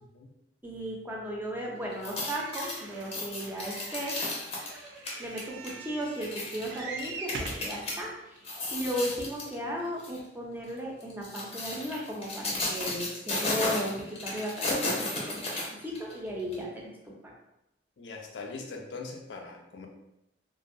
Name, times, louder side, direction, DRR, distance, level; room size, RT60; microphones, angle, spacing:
voice 1, 0.6-4.2 5.2-8.4 8.7-16.9 17.2-17.3, equal, 10° right, -2 dB, 0.5 m, -36 dB
sound 1, 1.9-7.9 8.4-9.5 10.0-10.2 11.0-16.1 16.5-16.6, left 2 dB, 35° left, 0.6 m, -34 dB
sound 2, 2.3-7.7 8.4-8.5 8.8-8.9, right 3 dB, 80° right, 0.4 m, -43 dB
voice 2, 18.0-19.9, left 3 dB, 85° left, 1 dB, 0.4 m, -41 dB
2.5 x 2.0 x 2.5 m, 0.87 s
head